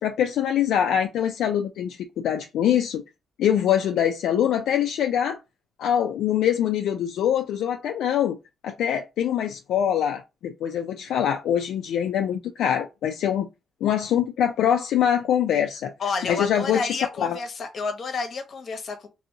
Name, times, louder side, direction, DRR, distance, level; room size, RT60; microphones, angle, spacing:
voice 1, 0.0-3.0 3.4-5.4 5.8-8.4 8.6-13.5 13.8-15.9 16.3-17.4, left 9 dB, 80° left, 0.3 m, -24 dB
voice 2, 16.0-19.1, left 4 dB, 50° left, 0.8 m, -30 dB
2.8 x 2.6 x 2.6 m
cardioid pair, 90°, 0 cm